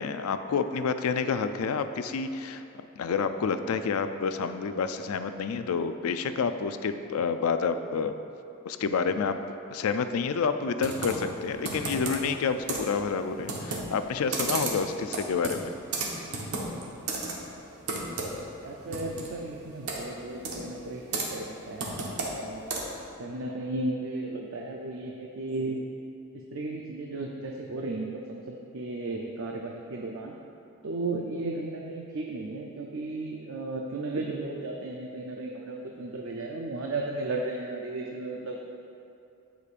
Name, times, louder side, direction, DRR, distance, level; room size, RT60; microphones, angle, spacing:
voice 1, 0.0-2.6 3.0-8.1 8.7-9.3 9.7-15.7, left 5 dB, 75° left, 9 dB, 0.4 m, -29 dB
Computer keyboard, 10.8-23.1, right 2 dB, 80° right, 1.2 m, -35 dB
voice 2, 18.6-21.9 22.3-22.8 23.2-25.8 26.5-30.3 30.8-38.6, right 2 dB, 60° right, 0 dB, 0.5 m, -35 dB
15.0 x 5.1 x 2.5 m, 2.7 s
head